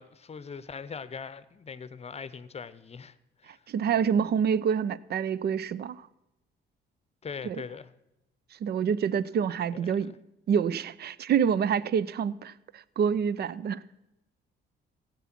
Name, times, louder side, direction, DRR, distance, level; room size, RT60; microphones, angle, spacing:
voice 1, 0.0-3.2 3.4-3.6 7.2-7.9 9.7-10.2, left 5 dB, 30° left, 0.7 m, -41 dB
voice 2, 3.7-6.1 7.4-7.6 8.6-10.1 10.5-13.8, right 7 dB, 55° right, 0.5 m, -27 dB
15.0 x 8.4 x 6.0 m
cardioid pair, 90°, 20 cm